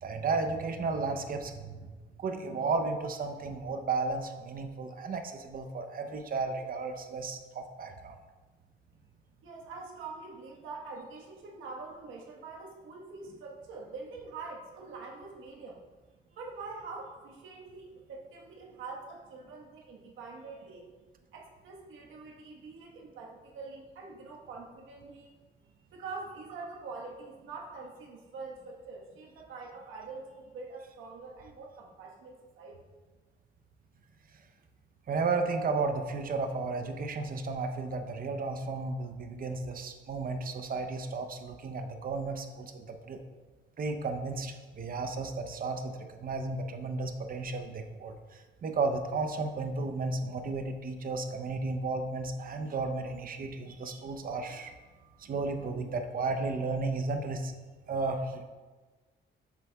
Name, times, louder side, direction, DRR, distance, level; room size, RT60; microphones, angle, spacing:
voice 1, 0.0-8.2 34.3-34.4 35.1-43.2 43.8-54.7 55.2-57.5 57.9-58.5, right 3 dB, 45° right, 6 dB, 0.7 m, -33 dB
voice 2, 9.4-15.8 16.3-20.9 21.3-25.3 25.8-32.8, right 4 dB, 80° right, -1 dB, 1.3 m, -45 dB
7.4 x 6.4 x 2.3 m, 1.3 s
cardioid pair, 90°, 20 cm